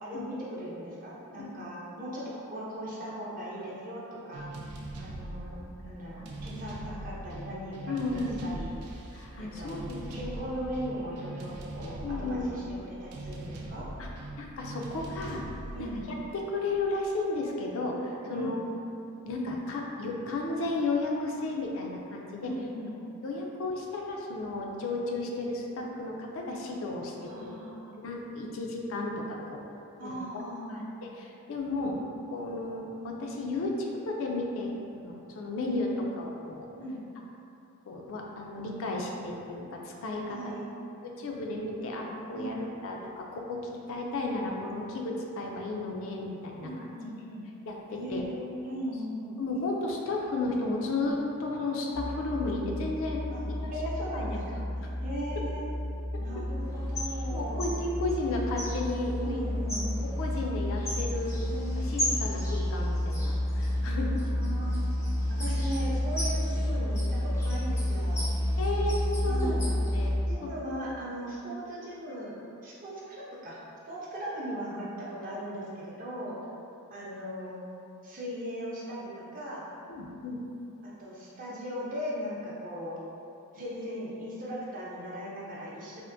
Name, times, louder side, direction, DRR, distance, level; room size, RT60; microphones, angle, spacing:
voice 1, 0.0-4.0 4.3-4.5 5.0-8.8 9.4-9.8 10.1-12.6 13.0-13.9 15.7-16.0 18.3-18.5 22.4-22.9 27.2-28.0 30.0-30.9 31.8-31.9 35.6-35.8 36.8-37.0 40.3-40.7 42.3-42.6 46.6-47.5 47.9-49.4 53.3-55.7 56.2-57.7 59.2-60.2 63.7-64.9 65.4-68.3 69.2-69.8 70.3-72.4 72.6-73.6 73.9-76.4 76.9-77.6 78.0-79.7 81.0-83.0 83.5-86.0, equal, 40° right, -6 dB, 0.6 m, -38 dB
sound 1, 4.3-17.1, right 1 dB, 90° right, 0.4 m, -41 dB
voice 2, 6.1-6.7 7.9-8.4 9.1-10.4 12.0-12.5 14.0-14.1 14.4-15.4 15.8-15.9 16.3-18.6 19.2-22.5 23.2-27.6 28.0-29.6 30.0-30.4 30.7-31.9 32.3-36.7 37.9-40.4 41.0-43.6 43.9-46.9 47.7-48.2 49.4-53.2 53.5-54.3 54.8-54.9 57.3-59.4 59.8-64.1 68.6-69.0 69.2-69.6 69.9-70.1 70.4-70.5 79.9-80.4, left 2 dB, 65° left, -1 dB, 0.4 m, -33 dB
sound 2, 51.9-70.3, left 1 dB, 80° left, 0.8 m, -31 dB
sound 3, 56.6-70.2, left 1 dB, 15° left, 0.5 m, -40 dB
3.5 x 2.5 x 2.5 m, 2.7 s
head